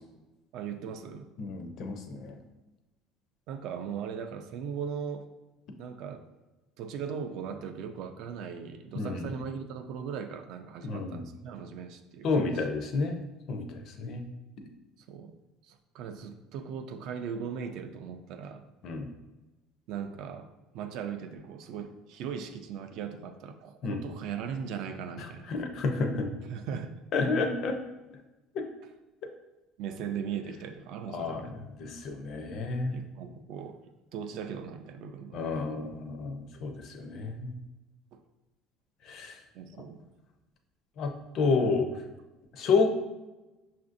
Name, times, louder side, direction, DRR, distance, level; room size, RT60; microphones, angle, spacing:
voice 1, 0.5-1.3 3.5-5.3 5.8-6.3 6.8-12.5 15.0-15.4 15.6-18.6 19.9-25.5 26.5-27.0 29.8-31.5 32.9-33.8 34.1-35.4 38.1-38.2 39.5-40.0 42.6-42.7, right 7 dB, 50° right, 7 dB, 0.3 m, -38 dB
voice 2, 1.4-2.4 8.9-9.3 10.8-11.2 12.2-13.2 13.5-13.7 14.0-14.2 18.8-19.1 23.8-24.0 25.5-26.3 27.1-27.8 28.5-28.6 29.2-29.3 31.1-33.0 35.3-37.5 39.1-39.4 41.0-41.1 41.3-41.9 42.5-42.9, left 4 dB, 40° left, 5 dB, 0.4 m, -30 dB
5.8 x 2.5 x 2.5 m, 1.1 s
cardioid pair, 175°, 0 cm